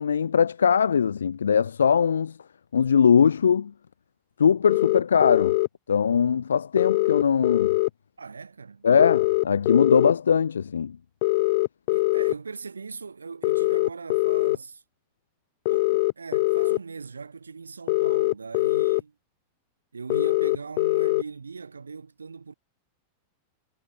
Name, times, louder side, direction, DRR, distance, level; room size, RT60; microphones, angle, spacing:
voice 1, 0.0-2.4 2.7-3.7 4.4-5.6 5.9-7.8 8.8-11.0, left 7 dB, 70° left, 1.5 m, -21 dB
sound 1, 4.7-5.7 6.8-7.9 9.0-10.1 11.2-12.3 13.4-14.6 15.7-16.8 17.9-19.0 20.1-21.2, left 24 dB, 50° left, 1.6 m, -22 dB
voice 2, 8.2-8.9 11.9-14.8 15.7-19.1 19.9-22.5, right 5 dB, 75° right, 6.2 m, -40 dB
figure-of-eight pair, 90°, 0 cm